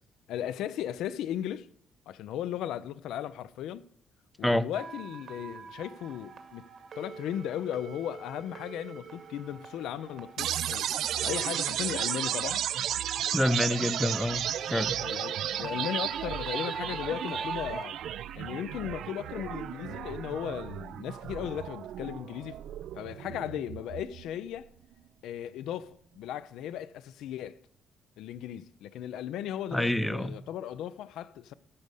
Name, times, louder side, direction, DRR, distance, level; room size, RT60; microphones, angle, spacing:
voice 1, 0.3-1.7 2.1-3.9 4.4-6.7 7.0-10.9 11.2-12.6 15.0-18.0 18.3-22.6 23.0-24.7 25.2-27.6 28.2-31.5, left 10 dB, 85° left, 0.4 m, -36 dB
sound 1, 4.7-17.8, right 4 dB, 60° right, 1.9 m, -43 dB
sound 2, 10.4-24.4, right 11 dB, 75° right, 0.3 m, -34 dB
voice 2, 13.3-14.4 14.7-15.0 29.7-30.4, left 1 dB, 5° left, 0.6 m, -27 dB
14.0 x 5.3 x 6.4 m
cardioid pair, 90°, 0 cm